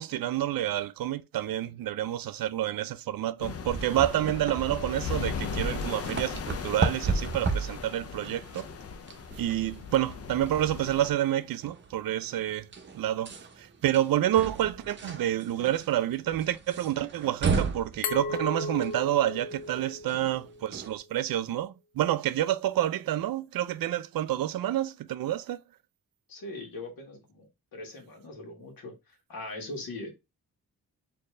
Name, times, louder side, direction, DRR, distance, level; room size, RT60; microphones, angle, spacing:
voice 1, 0.0-8.7 9.4-12.7 12.9-25.6, right 12 dB, 70° right, 0.5 m, -29 dB
sound 1, 3.4-11.1, left 6 dB, 40° left, 0.5 m, -38 dB
sound 2, 3.6-21.0, right 4 dB, 30° right, 0.7 m, -35 dB
Glass, 18.0-20.8, left 3 dB, 85° left, 0.8 m, -36 dB
voice 2, 26.3-27.5 27.7-30.1, left 2 dB, 70° left, 1.8 m, -41 dB
4.2 x 2.9 x 3.2 m
wide cardioid pair, 135°, 36 cm